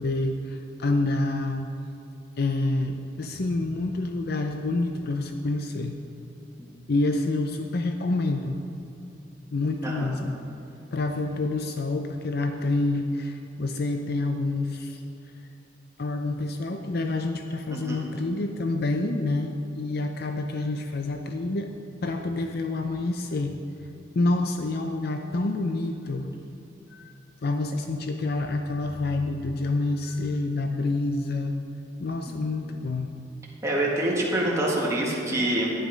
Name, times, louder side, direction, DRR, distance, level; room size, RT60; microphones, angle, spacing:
voice 1, 0.0-1.7 2.4-6.0 6.9-8.6 9.5-10.4 10.9-15.0 16.0-21.7 22.0-23.9 24.1-26.3 26.9-27.1 27.4-31.6 32.0-33.1, left 2 dB, 55° left, 5 dB, 0.5 m, -28 dB
voice 2, 17.7-18.0 32.3-32.4 33.6-35.7, right 1 dB, 15° right, -4 dB, 1.9 m, -26 dB
11.0 x 9.6 x 5.2 m, 2.7 s
head